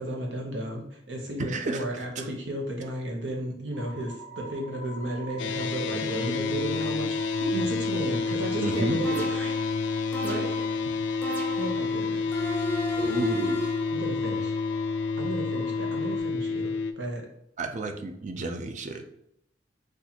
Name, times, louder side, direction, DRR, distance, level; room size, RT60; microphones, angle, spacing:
voice 1, 0.0-9.7 10.2-10.5 11.6-12.6 13.9-14.6 15.2-17.3, right 1 dB, 80° right, 0 dB, 0.9 m, -34 dB
voice 2, 1.4-1.8 2.2-2.3 5.9-6.1 8.6-9.0 13.0-13.6 17.6-19.0, right 2 dB, 40° right, 5 dB, 0.4 m, -31 dB
sound 1, 3.7-16.2, left 4 dB, 25° right, 1.2 m, -43 dB
sound 2, 5.4-16.9, left 4 dB, 80° left, 0.3 m, -29 dB
sound 3, 9.0-9.7 10.1-10.8 11.2-11.9 12.3-13.9, equal, 10° left, 0.6 m, -34 dB
4.1 x 2.5 x 2.8 m, 0.76 s
head